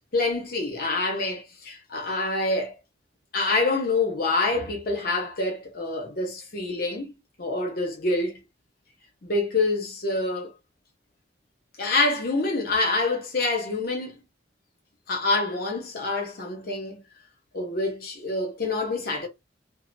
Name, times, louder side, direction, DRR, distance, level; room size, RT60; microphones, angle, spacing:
voice 1, 0.1-2.7 3.3-8.4 9.2-10.5 11.8-14.2 15.1-17.0 17.5-19.3, left 2 dB, 55° left, 0.8 m, -26 dB
2.7 x 2.0 x 2.5 m
head